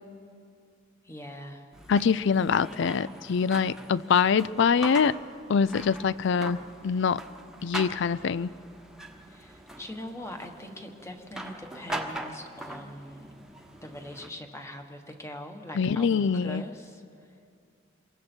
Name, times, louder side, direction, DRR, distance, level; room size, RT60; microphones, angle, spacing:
voice 1, 1.0-1.7 9.3-13.3 13.8-17.0, left 1 dB, 15° left, 4 dB, 1.4 m, -42 dB
sound 1, 1.7-14.3, right 1 dB, 5° right, 1.2 m, -41 dB
voice 2, 1.9-5.1 5.5-6.6 6.8-7.2 7.6-8.5 15.8-16.6, left 6 dB, 65° left, 19 dB, 0.4 m, -24 dB
27.5 x 23.0 x 4.5 m, 2.4 s
head